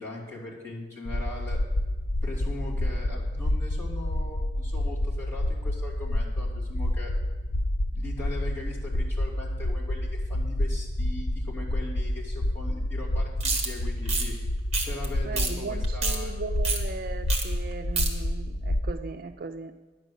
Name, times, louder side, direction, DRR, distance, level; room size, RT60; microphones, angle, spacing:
voice 1, 0.0-1.6 2.2-7.1 7.9-14.3 14.8-16.3, left 2 dB, 15° left, -7 dB, 2.7 m, -40 dB
sound 1, 1.0-18.9, left 1 dB, 65° left, 0.5 m, -29 dB
sound 2, 13.4-13.7 14.1-14.3 14.7-15.1 15.4-15.5 15.8-16.2 16.6-16.8 17.3-17.4 17.7-18.1, right 4 dB, 35° right, 1.4 m, -27 dB
voice 2, 15.3-19.7, right 4 dB, 50° right, 7 dB, 0.4 m, -37 dB
10.0 x 7.7 x 6.4 m, 1.2 s
head